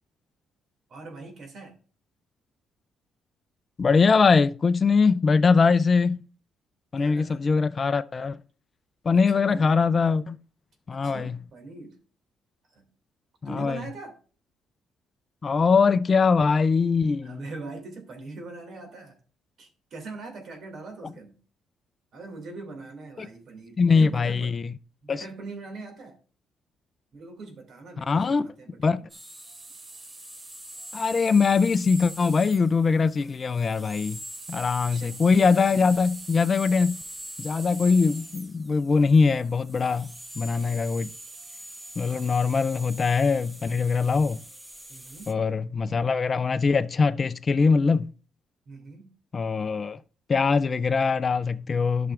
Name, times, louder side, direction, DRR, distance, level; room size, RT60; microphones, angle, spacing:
voice 1, 0.9-1.8 7.0-7.5 9.3-9.8 10.9-12.0 12.7-12.9 13.4-14.2 17.2-19.2 19.6-21.4 22.1-24.5 25.0-26.2 27.1-29.1 34.8-35.2 44.9-45.3 48.7-49.1, right 3 dB, 60° right, 2.5 m, -41 dB
voice 2, 3.8-6.2 6.9-8.4 9.0-10.4 10.9-11.4 13.4-13.8 15.4-17.4 23.2-23.3 23.8-24.7 25.1-25.2 28.0-28.5 28.8-29.0 30.9-34.2 34.5-37.0 37.4-41.1 42.0-44.4 45.3-48.1 49.3-50.0 50.3-52.1, left 5 dB, 40° left, 0.4 m, -22 dB
sound 1, 29.1-45.3, right 1 dB, 15° right, 0.9 m, -43 dB
12.0 x 5.8 x 2.5 m
cardioid pair, 90°, 0 cm